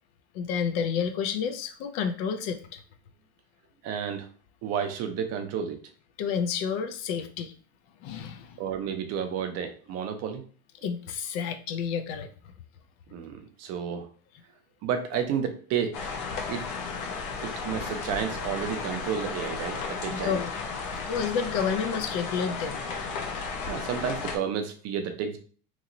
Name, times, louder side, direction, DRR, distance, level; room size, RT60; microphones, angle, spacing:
voice 1, 0.3-2.8 6.2-7.5 8.0-8.6 10.8-12.3 17.1-17.2 20.1-22.8, left 7 dB, 50° left, 7 dB, 0.5 m, -30 dB
voice 2, 3.8-4.3 4.6-5.8 8.6-10.4 13.1-14.1 14.8-16.1 16.5-16.6 17.4-20.4 23.7-25.4, right 7 dB, 35° right, 6 dB, 0.6 m, -31 dB
sound 1, 15.9-24.4, left 4 dB, 65° left, 0.9 m, -34 dB
3.0 x 2.8 x 2.6 m, 0.42 s
hypercardioid pair, 100°, 43 cm